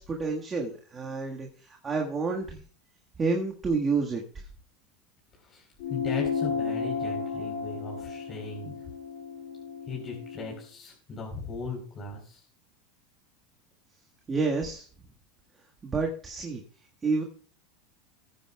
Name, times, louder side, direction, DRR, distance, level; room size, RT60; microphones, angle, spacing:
voice 1, 0.0-2.6 3.2-4.2 14.3-14.9 15.8-16.6 17.0-17.2, right 4 dB, 20° right, 1 dB, 1.6 m, -29 dB
voice 2, 5.3-8.9 9.9-12.4, left 4 dB, 30° left, -1 dB, 3.9 m, -38 dB
sound 1, 5.8-10.6, left 6 dB, 70° left, 6.6 m, -33 dB
20.0 x 9.3 x 2.3 m, 0.43 s
supercardioid pair, 120°, 0 cm